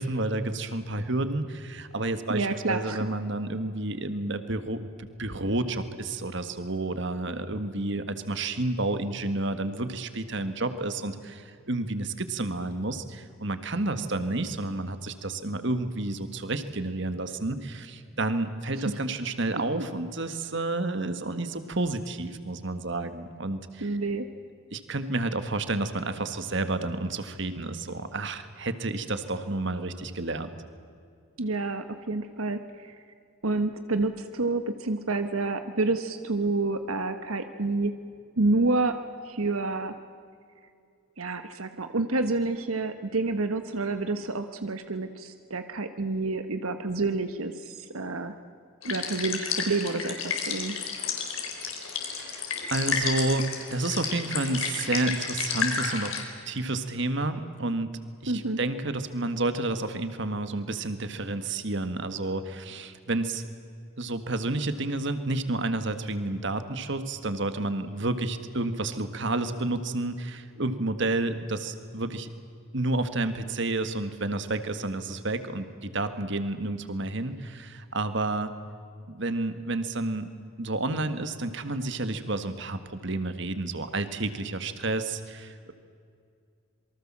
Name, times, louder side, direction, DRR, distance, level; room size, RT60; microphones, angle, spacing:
voice 1, 0.0-24.0 24.7-30.6 51.7-56.2 56.5-63.5 64.0-72.3 72.7-78.5 79.1-80.3 80.6-85.7, right 2 dB, 55° right, 10 dB, 1.7 m, -30 dB
voice 2, 2.3-3.1 18.8-18.9 19.7-19.8 23.8-24.3 31.4-32.9 33.4-37.9 38.4-38.9 39.2-39.9 41.2-48.3 48.8-50.8 58.3-58.6, right 3 dB, 85° right, 8 dB, 1.3 m, -28 dB
sound 1, 48.8-56.2, left 6 dB, 70° left, 4.5 m, -31 dB
27.5 x 23.5 x 7.5 m, 2.3 s
head